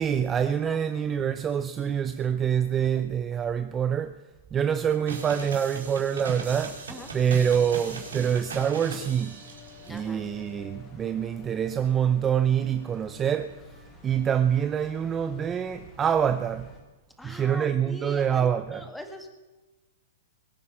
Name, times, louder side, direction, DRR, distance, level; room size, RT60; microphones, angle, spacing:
voice 1, 0.0-4.2 4.5-6.9 7.1-9.4 9.9-13.6 14.0-16.7 17.2-18.9, right 8 dB, 20° right, 0.5 m, -26 dB
sound 1, 5.1-10.0, right 5 dB, 85° right, 5.3 m, -39 dB
sound 2, 6.5-16.8, left 2 dB, 20° left, 3.8 m, -50 dB
voice 2, 9.9-10.2 17.2-18.4 18.7-19.3, left 1 dB, 5° left, 2.0 m, -42 dB
22.0 x 9.5 x 5.7 m
hypercardioid pair, 140°, 0 cm